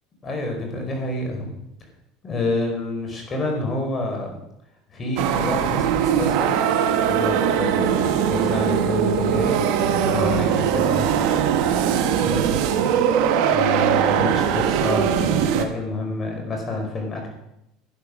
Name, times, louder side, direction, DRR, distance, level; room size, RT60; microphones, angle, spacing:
voice 1, 0.2-1.5 2.2-4.3 4.9-6.5 7.0-9.6 9.9-11.4 12.2-12.6 13.5-17.3, left 2 dB, 30° left, 2 dB, 5.0 m, -28 dB
sound 1, 5.2-15.6, right 8 dB, 70° right, 1.3 m, -21 dB
11.5 x 10.0 x 6.3 m, 0.82 s
supercardioid pair, 110°, 0 cm